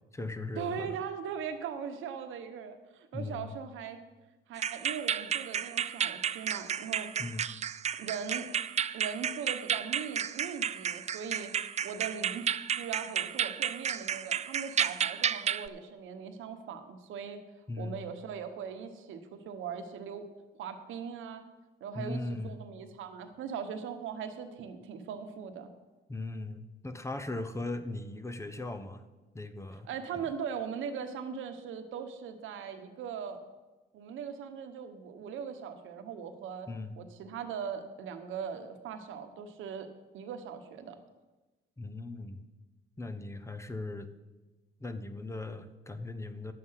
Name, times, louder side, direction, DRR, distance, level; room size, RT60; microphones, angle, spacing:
voice 1, 0.0-1.0 3.1-3.5 7.2-7.4 17.7-18.0 21.9-22.6 26.1-29.0 29.3-29.9 30.1-30.3 36.7-36.9 41.8-42.5 43.0-44.1 44.8-46.5, left 2 dB, 15° left, 10 dB, 0.8 m, -38 dB
voice 2, 0.6-4.0 4.5-7.2 8.0-8.5 8.9-11.5 11.8-12.5 12.8-17.4 17.8-20.2 20.6-21.4 21.8-25.7 29.8-33.4 33.9-36.7 37.0-39.9 40.1-41.0, right 7 dB, 80° right, 7 dB, 1.1 m, -40 dB
sound 1, 4.6-15.7, right 8 dB, 35° right, 0.4 m, -32 dB
11.0 x 7.7 x 5.7 m, 1.2 s
cardioid pair, 90°, 20 cm